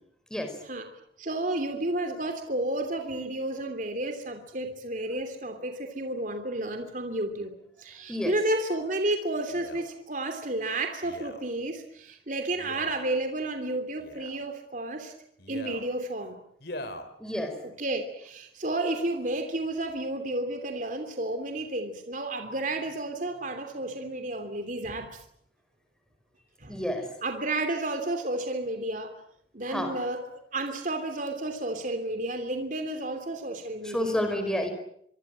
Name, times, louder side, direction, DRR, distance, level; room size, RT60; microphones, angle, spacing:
voice 1, 1.2-15.1 15.5-16.4 17.6-25.2 26.6-26.8 27.2-29.1 29.5-34.2, right 2 dB, 45° right, 6 dB, 3.0 m, -31 dB
Male speech man speaking, 9.5-9.9 11.0-11.5 12.5-13.1 14.0-14.4 15.4-15.9 16.6-17.1 17.8-17.9, left 1 dB, 60° left, 3.3 m, -41 dB
voice 2, 17.2-17.6 26.7-27.1 29.7-29.9 33.8-34.7, left 1 dB, 5° left, 6 dB, 5.1 m, -29 dB
25.5 x 24.5 x 7.6 m, 0.68 s
head